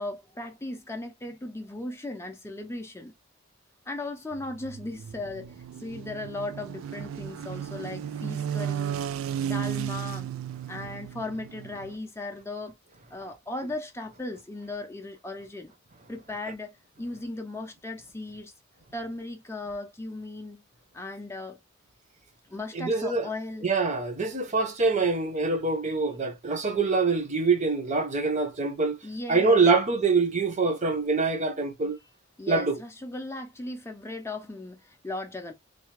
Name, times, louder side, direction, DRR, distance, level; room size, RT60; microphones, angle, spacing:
voice 1, 0.0-3.1 3.9-5.5 5.8-9.1 9.4-10.3 10.7-12.8 13.1-15.7 16.1-18.5 18.9-20.6 20.9-21.6 22.5-23.7 29.0-29.6 32.4-35.5, left 2 dB, 15° left, 0.5 m, -37 dB
sound 1, 4.3-12.0, right 9 dB, 90° right, 0.3 m, -34 dB
voice 2, 22.7-23.3 23.6-29.0 29.3-32.0 32.5-32.8, right 4 dB, 35° right, 0.7 m, -25 dB
3.3 x 2.2 x 3.1 m
head